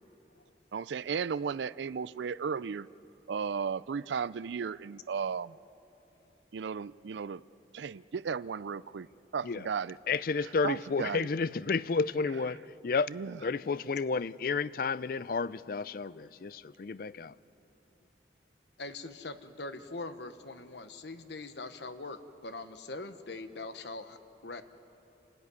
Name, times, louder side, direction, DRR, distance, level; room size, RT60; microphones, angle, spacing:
voice 1, 0.7-2.9 3.3-5.6 6.5-7.4 7.7-9.1 9.3-10.0 10.4-11.3 13.1-13.4, right 6 dB, 80° right, 19 dB, 0.4 m, -35 dB
voice 2, 10.1-12.6 12.8-13.1 13.4-17.3, left 4 dB, 50° left, 18 dB, 0.4 m, -31 dB
voice 3, 18.8-24.6, left 2 dB, 70° left, 10 dB, 1.1 m, -42 dB
28.5 x 13.5 x 9.6 m, 3.0 s
head